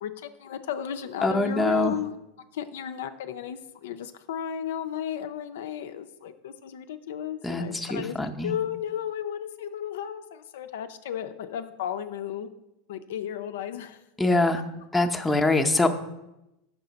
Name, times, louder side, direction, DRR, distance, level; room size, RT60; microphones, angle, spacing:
voice 1, 0.0-2.1 2.5-8.1 8.4-12.5 12.9-14.0, left 9 dB, 70° left, 9 dB, 0.4 m, -34 dB
voice 2, 1.2-1.9 7.4-8.5 14.2-14.6 14.9-15.9, left 2 dB, 5° left, 3 dB, 0.6 m, -24 dB
5.7 x 5.4 x 4.0 m, 0.91 s
hypercardioid pair, 85°, 0 cm